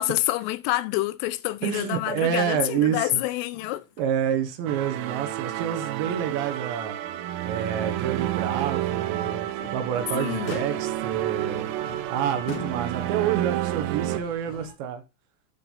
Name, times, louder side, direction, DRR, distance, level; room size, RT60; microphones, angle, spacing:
voice 1, 0.0-3.8 10.1-10.6, left 17 dB, 85° left, 3.1 m, -27 dB
voice 2, 1.6-3.2 4.0-7.0 7.4-9.5 9.7-11.7 12.1-15.0, right 9 dB, 75° right, 3.0 m, -28 dB
Motor vehicle (road), 3.5-4.1 4.4-4.6 5.1-6.0 6.4-6.6 7.1-7.2 9.4-9.9 10.5-11.1 11.9-12.1 12.5-13.3 14.3-14.4, left 4 dB, 70° left, 1.2 m, -41 dB
sound 1, 4.7-14.2, right 14 dB, 90° right, 3.3 m, -30 dB
sound 2, 8.7-14.7, left 4 dB, 35° left, 2.8 m, -46 dB
12.0 x 4.5 x 5.4 m
omnidirectional pair, 5.8 m